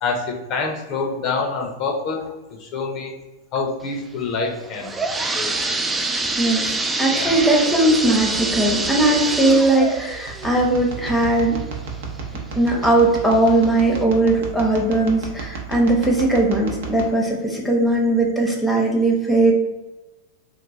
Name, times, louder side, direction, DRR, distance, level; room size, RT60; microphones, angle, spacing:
voice 1, 0.0-2.3 2.6-3.1 3.5-5.6 7.1-7.4, left 4 dB, 45° left, 1 dB, 0.6 m, -26 dB
sound 1, 4.6-12.2 12.7-12.8 13.5-13.6 14.0-14.1, right 3 dB, 10° right, 0.3 m, -26 dB
voice 2, 6.4-11.6 12.6-19.5, right 2 dB, 5° left, -1 dB, 0.8 m, -19 dB
sound 2, 7.2-17.0, right 5 dB, 75° right, 0.7 m, -34 dB
3.1 x 2.1 x 3.6 m, 1.1 s
hypercardioid pair, 120°, 0 cm